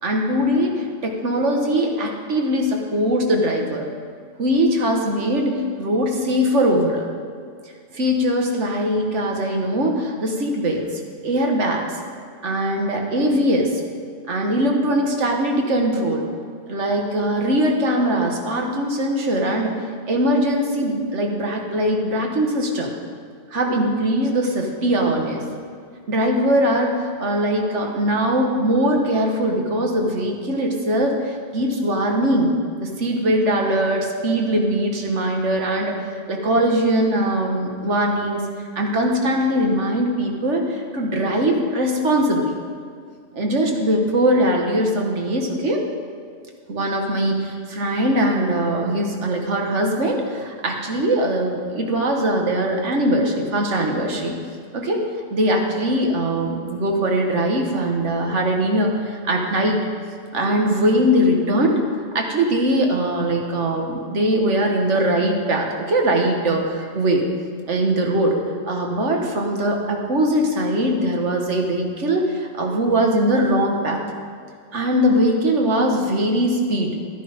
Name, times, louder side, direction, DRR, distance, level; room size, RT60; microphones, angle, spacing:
voice 1, 0.0-3.9 4.4-7.1 7.9-10.9 11.2-11.9 12.4-13.7 14.3-16.2 16.7-19.7 20.1-22.9 23.5-25.4 26.1-32.5 32.8-38.4 38.7-42.6 43.3-45.8 46.7-54.3 54.7-55.0 55.3-59.8 60.3-61.8 62.1-67.2 67.7-68.4 68.6-74.0 74.7-77.0, right 1 dB, 70° right, 1 dB, 1.7 m, -21 dB
12.5 x 9.9 x 5.2 m, 2.2 s
omnidirectional pair, 1.3 m